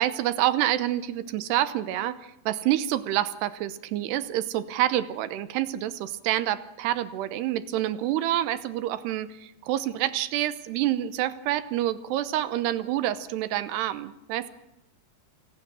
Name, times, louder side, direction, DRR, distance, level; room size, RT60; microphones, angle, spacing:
voice 1, 0.0-14.5, right 13 dB, 80° right, 14 dB, 2.9 m, -27 dB
29.0 x 18.5 x 6.1 m, 0.90 s
omnidirectional pair, 4.8 m